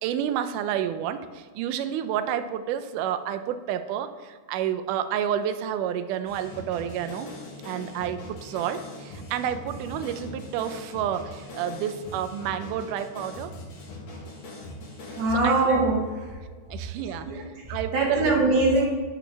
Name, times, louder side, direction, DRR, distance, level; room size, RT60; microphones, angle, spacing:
voice 1, 0.0-7.3 7.6-13.5 15.4-15.9 16.7-17.3 17.7-18.4, right 9 dB, 85° right, 10 dB, 2.1 m, -30 dB
sound 1, 6.3-15.4, left 2 dB, 60° left, 2.7 m, -41 dB
voice 2, 15.1-16.4 17.2-18.8, right 2 dB, 60° right, -2 dB, 2.4 m, -23 dB
9.1 x 6.1 x 3.3 m, 1.5 s
omnidirectional pair, 3.6 m